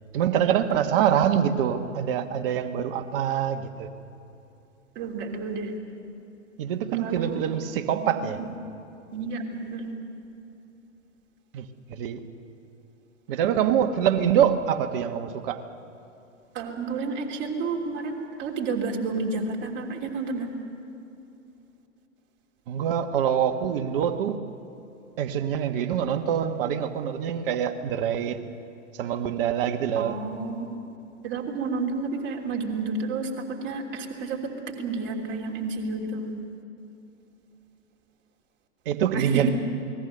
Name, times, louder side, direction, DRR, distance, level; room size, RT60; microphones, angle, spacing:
voice 1, 0.1-3.9 6.6-8.4 11.5-12.2 13.3-15.6 22.7-24.4 25.2-28.4 29.0-30.1 38.8-39.5, right 9 dB, 45° right, 7 dB, 1.5 m, -25 dB
voice 2, 4.9-5.7 6.9-7.5 7.9-8.5 9.1-9.9 16.5-20.5 30.0-30.7 31.2-36.3 39.1-39.5, right 4 dB, 30° right, 0 dB, 3.2 m, -31 dB
28.5 x 20.0 x 6.7 m, 2.8 s
figure-of-eight pair, 110°, 39 cm